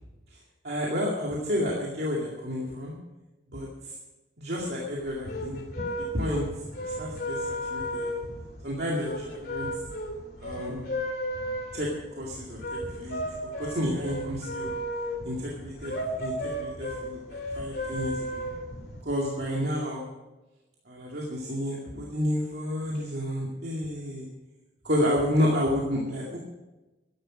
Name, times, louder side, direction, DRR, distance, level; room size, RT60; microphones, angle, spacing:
voice 1, 0.6-2.9 3.5-3.9 4.4-5.6 6.0-6.4 6.8-7.4 7.7-8.1 8.6-9.7 10.4-10.8 11.7-11.9 12.2-14.7 15.2-18.4 19.0-20.1 20.9-24.3 24.8-26.4, equal, 55° right, -3 dB, 2.3 m, -30 dB
sound 1, 5.0-19.0, equal, 55° left, 3.0 m, -34 dB
13.0 x 11.0 x 6.2 m, 1.1 s
head